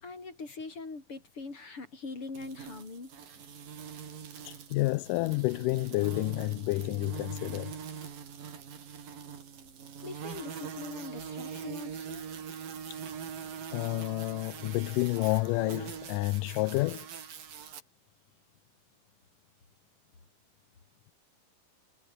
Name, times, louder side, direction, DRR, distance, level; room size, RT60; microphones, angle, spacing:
voice 1, 0.0-3.1 10.0-12.3, left 3 dB, 35° left, 6.3 m, -42 dB
sound 1, 2.3-17.8, right 7 dB, 75° right, 4.9 m, -43 dB
voice 2, 4.4-7.7 12.9-13.0 13.7-17.1, left 21 dB, 80° left, 2.0 m, -30 dB
omnidirectional pair, 4.0 m